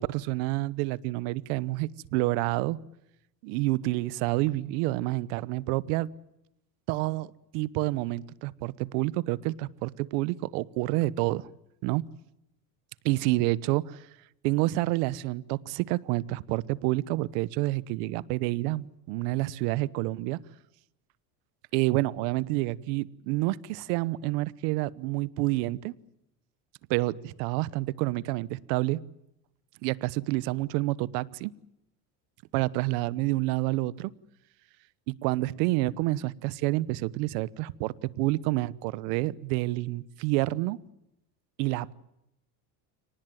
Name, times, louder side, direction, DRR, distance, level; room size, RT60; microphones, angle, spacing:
voice 1, 0.0-2.8 3.4-6.1 6.9-7.3 7.5-11.5 11.8-12.0 13.0-14.1 14.4-20.4 21.7-25.9 26.9-29.0 29.8-31.5 32.5-34.1 35.1-40.8 41.6-41.9, right 19 dB, 75° right, 21 dB, 1.1 m, -28 dB
25.5 x 19.0 x 9.1 m, 0.85 s
supercardioid pair, 105°, 48 cm